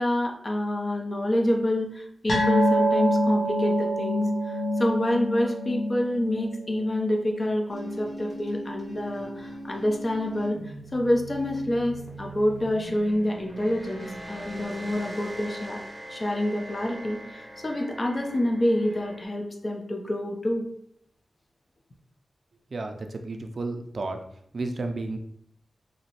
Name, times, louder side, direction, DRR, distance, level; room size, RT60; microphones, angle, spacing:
voice 1, 0.0-10.6 10.9-15.8 16.1-20.6, left 1 dB, 35° left, 1 dB, 0.4 m, -27 dB
sound 1, 2.3-9.1 9.4-9.6 10.0-10.1, equal, 65° left, 0.8 m, -27 dB
sound 2, 7.7-19.3, right 1 dB, 10° right, 0.8 m, -41 dB
voice 2, 22.7-24.2 24.5-25.2, right 2 dB, 55° right, 5 dB, 0.3 m, -32 dB
2.9 x 2.5 x 2.8 m, 0.69 s
wide cardioid pair, 120°, 0 cm